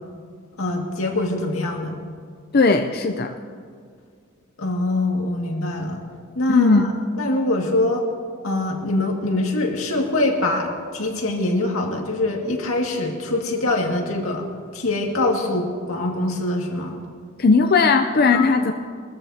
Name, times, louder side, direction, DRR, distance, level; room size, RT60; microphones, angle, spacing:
voice 1, 0.6-2.0 4.6-6.0 6.4-6.9 7.2-8.0 8.4-14.5 14.7-17.0 18.3-18.5, left 2 dB, 85° left, 0 dB, 2.1 m, -23 dB
voice 2, 2.5-3.3 6.5-6.8 17.4-18.7, left 4 dB, 45° left, 5 dB, 0.5 m, -17 dB
23.0 x 14.0 x 2.8 m, 2.1 s
head